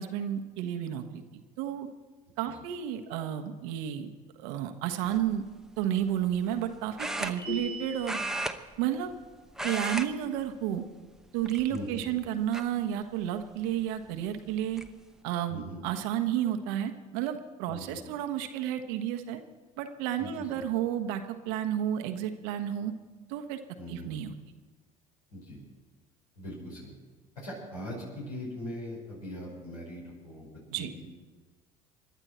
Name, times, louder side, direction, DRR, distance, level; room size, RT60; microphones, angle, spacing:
voice 1, 0.0-1.9 2.4-4.1 4.4-5.4 5.8-8.2 8.8-9.2 9.6-10.9 11.3-14.8 15.2-19.4 19.8-22.9 23.3-23.6 23.9-24.3 30.7-30.9, right 10 dB, 65° right, 6 dB, 1.3 m, -31 dB
sound 1, 5.0-5.3 7.0-7.8 8.0-9.2 9.5-10.1 10.4-10.6 11.4-12.0 12.5-12.6 14.1-14.2 14.5-14.9, right 1 dB, 5° right, 1.0 m, -34 dB
sound 2, 7.4-8.2, right 1 dB, 30° left, 5.3 m, -36 dB
voice 2, 11.7-12.0 15.5-15.8 17.7-18.0 20.2-20.6 23.8-24.1 25.3-25.6 26.4-26.9 27.4-30.5 30.8-31.0, left 1 dB, 80° left, -5 dB, 5.4 m, -41 dB
27.0 x 11.5 x 4.4 m, 1.3 s
figure-of-eight pair, 60°, 19 cm